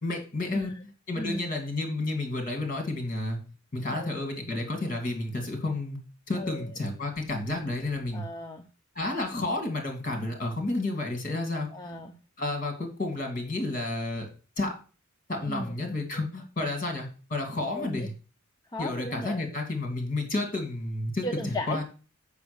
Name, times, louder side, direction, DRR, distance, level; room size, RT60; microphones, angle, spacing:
voice 1, 0.0-0.8 1.1-3.4 3.7-6.0 6.3-8.2 8.9-11.7 12.4-14.3 14.6-14.7 15.3-18.1 18.8-21.8, left 2 dB, 40° left, 4 dB, 2.8 m, -31 dB
voice 2, 3.8-4.1 6.3-6.7 8.1-8.7 11.7-12.2 15.4-15.8 17.7-18.1 18.7-19.4 21.2-21.8, left 1 dB, 20° left, 3 dB, 0.7 m, -36 dB
6.9 x 6.2 x 7.0 m, 0.37 s
head